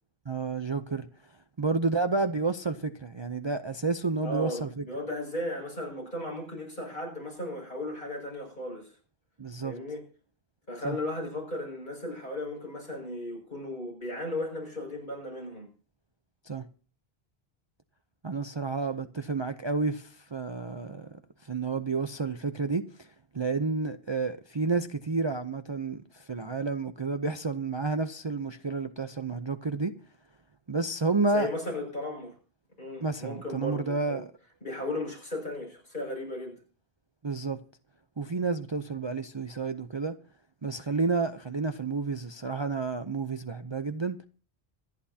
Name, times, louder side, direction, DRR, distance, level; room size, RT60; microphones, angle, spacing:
voice 1, 0.3-1.1 1.6-4.7 9.4-9.7 10.8-11.0 16.5-16.6 18.2-21.1 21.4-23.1 23.3-29.9 30.7-31.5 33.0-34.3 37.2-37.6 38.2-40.1 40.6-44.2, right 3 dB, 30° right, 0.7 m, -30 dB
voice 2, 4.2-8.9 9.6-10.0 10.7-15.7 31.2-32.3 32.8-34.2 34.6-36.6, left 1 dB, 50° left, 6.8 m, -36 dB
26.0 x 11.0 x 2.8 m
omnidirectional pair, 1.1 m